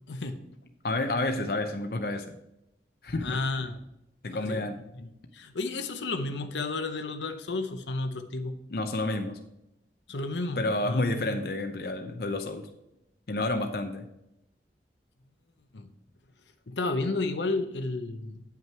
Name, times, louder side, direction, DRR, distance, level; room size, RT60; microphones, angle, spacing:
voice 1, 0.1-0.4 3.2-3.8 4.3-4.6 4.9-8.6 10.1-11.2 15.7-15.9 16.7-18.4, left 3 dB, 90° left, 7 dB, 0.8 m, -32 dB
voice 2, 0.8-2.3 3.0-3.4 4.2-4.8 8.7-9.4 10.6-12.7 13.3-14.1, left 2 dB, 55° left, 6 dB, 0.6 m, -30 dB
9.3 x 5.8 x 4.5 m, 0.84 s
head